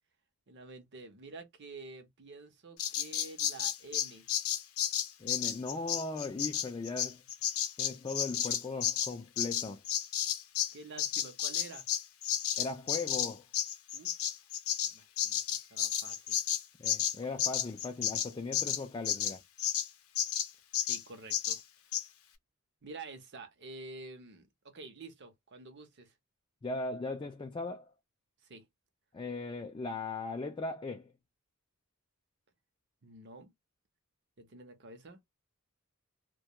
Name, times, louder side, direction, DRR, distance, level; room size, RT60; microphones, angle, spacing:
voice 1, 0.5-4.3 10.7-11.8 13.9-14.2 14.9-15.4 15.7-16.4 20.8-21.6 22.8-26.1 28.4-28.7 33.0-33.5 34.4-35.2, right 3 dB, 50° right, 0.7 m, -49 dB
Bird vocalization bird call bird song, 2.8-10.7 11.0-19.9 20.2-20.5 20.7-21.0 21.3-21.6 21.9-22.0, left 10 dB, 75° left, 0.6 m, -32 dB
voice 2, 5.2-7.2 7.8-9.8 12.6-13.5 16.8-19.4 26.6-27.9 29.1-31.1, left 3 dB, 20° left, 0.3 m, -38 dB
2.2 x 2.2 x 2.8 m
head